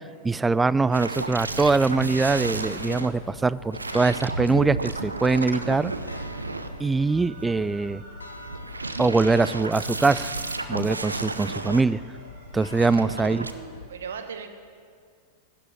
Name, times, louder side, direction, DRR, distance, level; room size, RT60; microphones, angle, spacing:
voice 1, 0.2-5.9 6.8-8.0 9.0-10.3 10.7-12.0 12.5-13.5, right 3 dB, 10° right, 18 dB, 0.3 m, -23 dB
sound 1, 0.9-3.1 3.7-7.1 8.4-11.8 12.7-13.5, right 3 dB, 80° right, 0.6 m, -32 dB
sound 2, 1.2-13.9, left 3 dB, 75° left, 0.8 m, -43 dB
sound 3, 6.9-8.6 9.3-10.6 11.0-13.3, right 3 dB, 50° right, 2.5 m, -52 dB
voice 2, 13.0-14.5, right 6 dB, 65° right, 8 dB, 1.2 m, -38 dB
12.5 x 7.7 x 9.9 m, 2.1 s
figure-of-eight pair, 90°, 0 cm